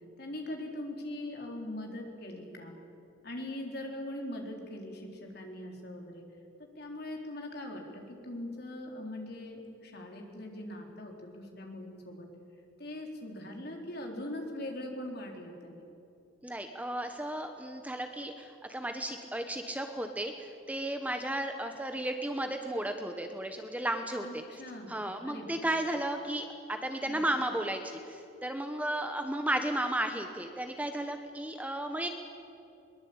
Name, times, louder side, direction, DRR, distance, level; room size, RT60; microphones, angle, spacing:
voice 1, 0.2-2.7 3.2-6.2 6.8-12.3 12.8-15.8 24.2-25.6 27.1-27.2, left 1 dB, 50° left, 1 dB, 3.9 m, -41 dB
voice 2, 16.4-24.4 24.9-32.1, right 1 dB, 5° right, 6 dB, 1.0 m, -34 dB
22.0 x 22.0 x 8.7 m, 2.7 s
head